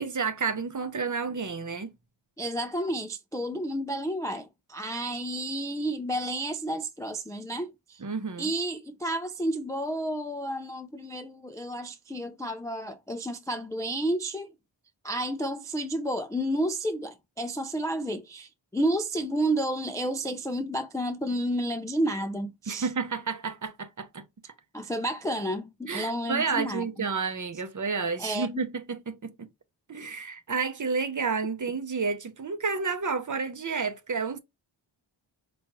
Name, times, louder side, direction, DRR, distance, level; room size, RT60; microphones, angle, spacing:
voice 1, 0.0-1.9 8.0-8.5 22.7-24.2 25.9-29.5 29.9-34.4, right 5 dB, 40° right, 0.7 m, -30 dB
voice 2, 2.4-8.0 8.4-14.5 15.0-22.9 24.7-27.1 28.2-28.6, right 1 dB, 10° left, 0.3 m, -31 dB
4.6 x 2.5 x 3.0 m
wide cardioid pair, 65°, 49 cm